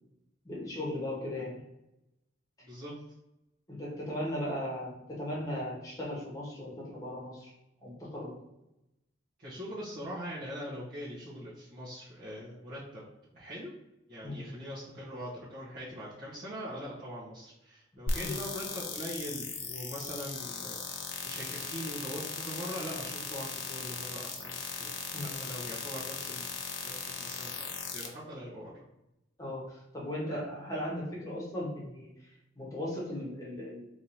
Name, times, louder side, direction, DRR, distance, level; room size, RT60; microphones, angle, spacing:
voice 1, 0.4-1.6 3.7-7.5 7.8-8.3 14.2-14.4 18.2-18.4 25.1-25.4 29.4-33.9, left 1 dB, 15° left, -5 dB, 1.3 m, -37 dB
voice 2, 9.4-13.0 13.3-13.7 14.1-24.9 25.4-26.5 26.8-26.9 27.2-28.7, equal, 50° right, -11 dB, 1.3 m, -42 dB
sound 1, 18.1-28.1, left 5 dB, 80° left, 0.7 m, -38 dB
3.7 x 3.1 x 2.8 m, 0.89 s
head